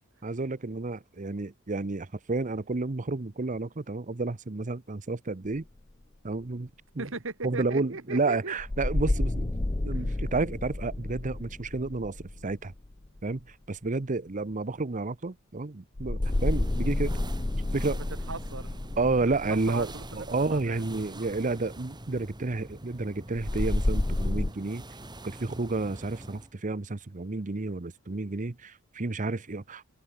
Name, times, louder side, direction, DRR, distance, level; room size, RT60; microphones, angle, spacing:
voice 1, 0.2-5.6 6.2-6.7 6.9-7.1 7.4-9.5 9.8-12.7 13.2-17.2 17.7-18.0 19.0-24.8 25.2-29.8, right 3 dB, 40° right, 0.8 m, -31 dB
sound 1, 5.6-5.7 8.6-13.3 16.0-21.0 23.3-24.5, left 2 dB, 20° left, 0.6 m, -30 dB
voice 2, 7.0-8.5 9.9-10.1 17.9-18.7 19.2-19.3 19.7-20.8, right 3 dB, 70° right, 2.4 m, -38 dB
sound 2, 16.2-26.5, right 1 dB, 20° right, 6.5 m, -44 dB
head